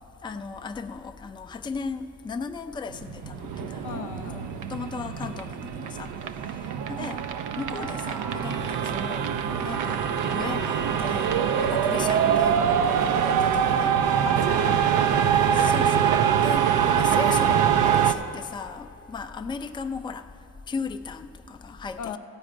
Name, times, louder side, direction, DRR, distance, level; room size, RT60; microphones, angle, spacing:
voice 1, 0.2-4.1 4.3-6.1 6.9-7.2 7.6-9.3 9.6-11.3 11.6-13.9 15.5-20.2 20.7-22.2, left 4 dB, 15° left, 7 dB, 0.4 m, -36 dB
sound 1, 2.9-18.1, right 8 dB, 85° right, 0.5 m, -24 dB
voice 2, 3.8-4.5 14.2-15.3 22.0-22.2, left 7 dB, 85° left, 7 dB, 0.7 m, -37 dB
14.5 x 5.0 x 8.8 m, 2.7 s
cardioid pair, 90°, 30 cm